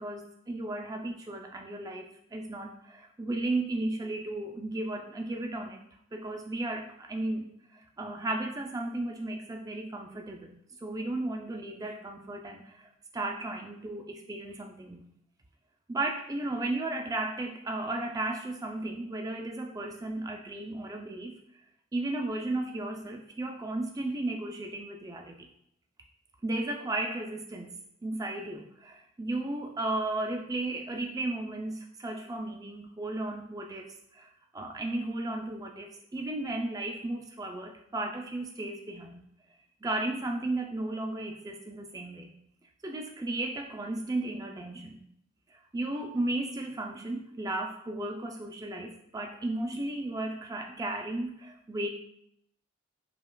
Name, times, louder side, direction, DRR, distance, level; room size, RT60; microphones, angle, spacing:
voice 1, 0.0-2.1 2.3-5.8 6.1-10.6 10.8-15.0 15.9-21.3 21.9-25.5 26.4-27.7 28.0-39.2 39.8-42.4 42.8-45.1 45.7-51.9, right 2 dB, 20° right, 2 dB, 0.3 m, -34 dB
5.2 x 2.3 x 2.2 m, 0.73 s
head